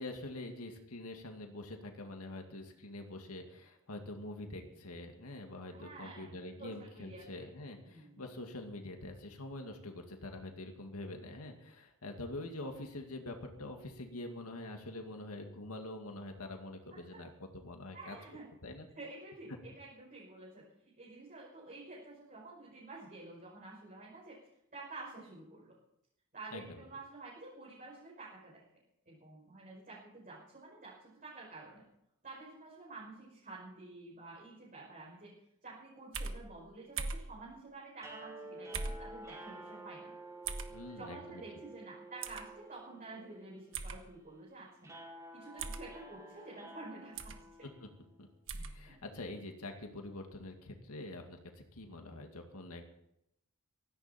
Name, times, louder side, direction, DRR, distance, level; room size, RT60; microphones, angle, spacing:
voice 1, 0.0-18.2 18.6-18.9 26.5-26.8 40.7-41.4 47.8-47.9 48.2-48.3 48.5-52.8, left 2 dB, 90° left, 3 dB, 2.2 m, -45 dB
voice 2, 5.7-7.4 7.8-8.3 16.9-17.2 17.9-18.4 19.0-20.6 21.0-24.4 24.7-25.8 26.3-28.6 29.1-31.8 32.2-35.3 35.6-40.2 40.9-45.0 45.3-47.3 48.9-49.2, right 2 dB, 40° right, -6 dB, 5.3 m, -50 dB
sound 1, 36.1-36.4 37.0-37.3 38.7-39.0 40.5-40.7 42.2-42.4 43.7-44.0 45.6-45.9 47.2-47.4 48.5-48.7, right 4 dB, 60° right, 1.4 m, -38 dB
sound 2, 38.0-48.2, right 1 dB, 15° right, 4.7 m, -51 dB
17.0 x 14.5 x 4.4 m, 0.79 s
head